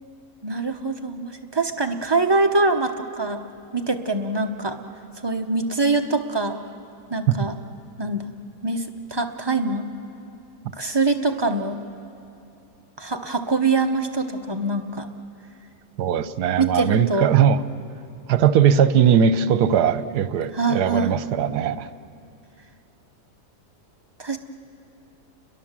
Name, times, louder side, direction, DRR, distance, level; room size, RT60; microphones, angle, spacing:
voice 1, 0.4-3.4 3.7-4.8 5.2-6.6 7.1-7.5 8.0-8.2 8.6-8.8 9.1-9.9 10.8-11.8 13.0-15.1 16.6-17.3 20.5-21.1 24.2-24.4, right 3 dB, 20° right, 5 dB, 0.7 m, -24 dB
voice 2, 16.0-17.6 18.3-21.9, right 8 dB, 80° right, 14 dB, 1.3 m, -19 dB
30.0 x 22.0 x 7.4 m, 2.7 s
omnidirectional pair, 1.7 m